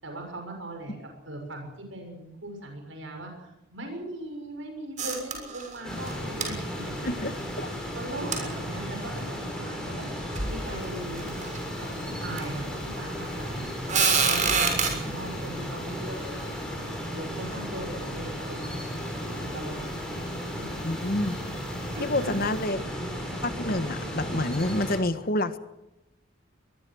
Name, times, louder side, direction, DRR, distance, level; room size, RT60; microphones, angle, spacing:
voice 1, 0.0-1.0 1.2-6.9 7.7-10.1 10.5-11.3 11.8-11.9 12.2-12.7 13.0-13.7 14.0-16.6 17.1-18.7 19.4-20.1 20.6-20.7 21.9-22.4, right 1 dB, 75° right, 3 dB, 6.8 m, -39 dB
sound 1, 5.0-5.8 6.1-6.2 6.4-6.5 8.3-8.4 9.2-9.3 10.0-10.1 10.4-10.6 11.2-11.6 12.4-12.5 13.9-14.9, right 5 dB, 40° right, 6.5 m, -25 dB
sound 2, 5.8-25.0, equal, 5° left, 7.8 m, -34 dB
voice 2, 7.0-7.7 20.8-21.4 22.0-22.8 23.4-25.6, left 1 dB, 45° left, 11 dB, 1.5 m, -28 dB
24.0 x 21.0 x 6.4 m, 0.90 s
head